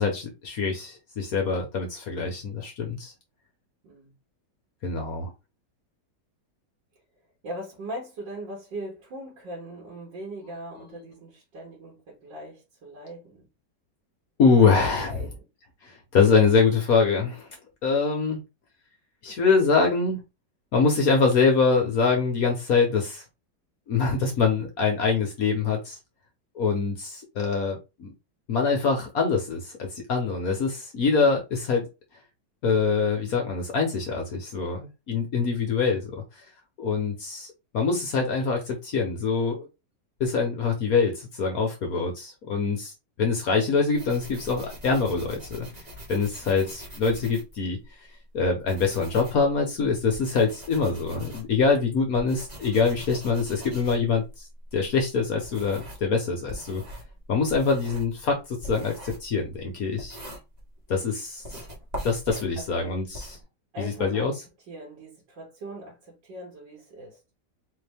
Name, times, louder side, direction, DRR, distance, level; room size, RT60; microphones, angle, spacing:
voice 1, 0.0-3.1 4.8-5.3 14.4-15.2 15.8-17.5 17.8-18.4 19.2-20.2 20.7-23.2 23.9-26.0 26.5-28.1 28.5-31.8 32.6-36.1 36.8-37.5 37.7-39.7 40.2-42.9 43.2-45.7 46.1-47.8 48.3-54.4 54.7-56.8 57.3-58.4 58.6-60.2 60.9-61.4 62.0-63.3 63.8-64.3, left 4 dB, 60° left, 1.2 m, -24 dB
voice 2, 3.8-4.1 7.4-13.5 15.0-15.3 60.9-61.8 62.6-62.9 63.7-64.3 64.7-67.2, right 1 dB, 75° right, 2.1 m, -40 dB
sound 1, 43.9-47.9 48.4-56.1 56.5-61.0 61.4-63.4, equal, 25° right, 1.1 m, -42 dB
4.1 x 2.7 x 3.4 m
omnidirectional pair, 2.0 m